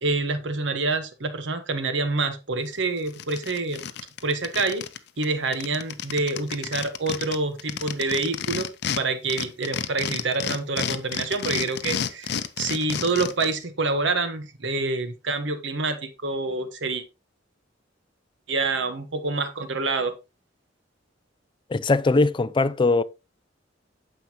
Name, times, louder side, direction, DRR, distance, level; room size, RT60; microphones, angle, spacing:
voice 1, 0.0-3.8 4.2-4.8 5.2-8.7 9.0-17.0 18.5-20.1, right 3 dB, 70° right, 1.2 m, -27 dB
sound 1, 2.7-2.8 3.1-5.0 5.2-5.3 5.5-9.0 9.3-13.5, left 7 dB, 60° left, 0.7 m, -30 dB
voice 2, 21.7-23.0, left 3 dB, 25° left, 0.4 m, -20 dB
9.4 x 6.9 x 2.9 m
head